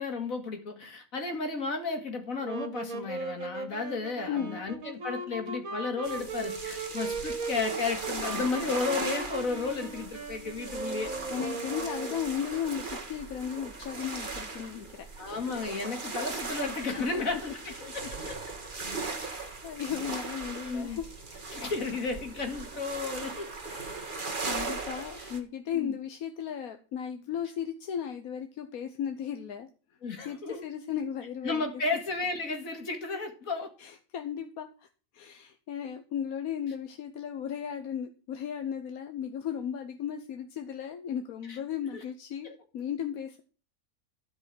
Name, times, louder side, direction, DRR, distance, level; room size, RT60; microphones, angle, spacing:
voice 1, 0.0-11.1 15.2-18.4 20.6-21.0 21.5-23.5 25.2-25.3 25.7-25.9 30.0-30.6 31.4-33.7 41.5-41.6 41.9-42.0 42.4-42.5, left 4 dB, 70° left, 4 dB, 2.6 m, -33 dB
sound 1, 2.4-12.4, right 3 dB, 75° right, 2.1 m, -38 dB
voice 2, 4.3-4.6 11.3-15.1 17.0-17.5 17.8-18.1 19.2-21.6 23.7-24.1 24.4-29.7 30.2-31.6 33.8-34.7 35.1-43.4, left 8 dB, 90° left, 7 dB, 1.4 m, -36 dB
sound 2, 6.0-25.4, right 3 dB, 35° right, 1.8 m, -39 dB
13.0 x 5.5 x 7.6 m, 0.37 s
omnidirectional pair, 1.5 m